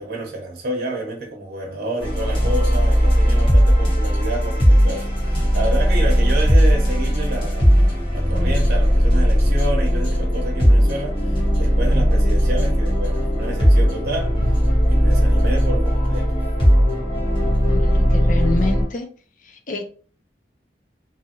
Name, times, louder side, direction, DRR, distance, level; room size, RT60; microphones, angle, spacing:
voice 1, 0.0-14.6 14.9-16.4, right 1 dB, 60° right, 0.8 m, -29 dB
sound 1, 2.0-18.8, equal, 30° left, 1.2 m, -17 dB
voice 2, 17.6-19.1 19.4-19.8, left 3 dB, 50° left, 0.6 m, -27 dB
2.7 x 2.4 x 2.8 m
head